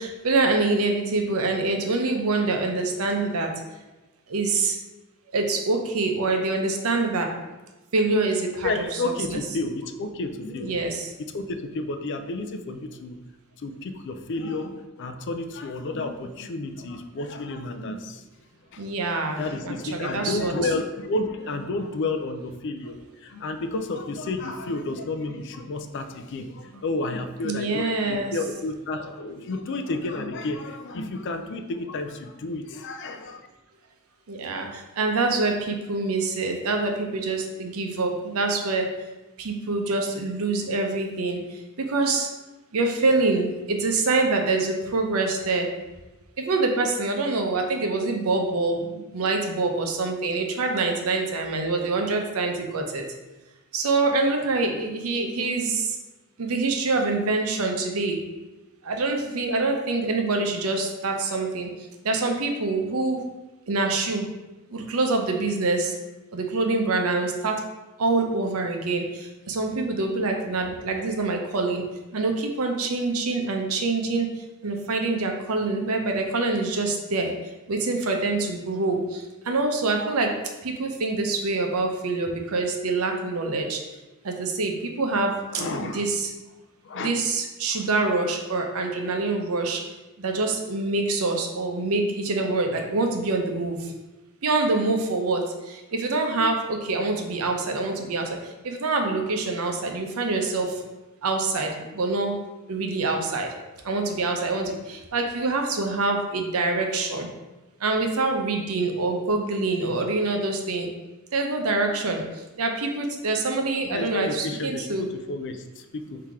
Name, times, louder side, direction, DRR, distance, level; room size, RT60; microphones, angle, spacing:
voice 1, 0.0-3.5 4.3-4.7 5.3-7.3 7.9-9.4 10.6-11.0 18.8-20.7 27.4-28.3 34.3-34.7 35.0-38.9 39.4-41.4 41.9-42.3 42.7-45.7 46.4-53.0 53.7-55.8 56.4-58.2 58.9-61.7 62.0-63.2 63.7-64.3 64.7-65.9 66.3-67.6 68.0-69.0 69.5-71.8 72.1-74.3 74.6-77.3 77.7-79.0 79.5-80.3 80.6-83.8 84.3-85.3 85.8-86.3 87.0-89.8 90.2-93.8 94.4-95.4 95.9-98.3 98.6-100.7 101.2-102.3 102.7-103.5 103.9-104.7 105.1-107.3 107.8-110.9 111.3-112.2 112.6-115.1, right 3 dB, 80° right, 3 dB, 0.7 m, -25 dB
voice 2, 8.6-10.8 11.3-13.2 13.6-18.2 18.7-18.9 19.4-22.9 23.2-33.5 85.5-86.1 86.8-87.1 113.9-116.2, left 2 dB, 55° left, 7 dB, 0.4 m, -31 dB
3.8 x 2.8 x 4.7 m, 1.1 s
head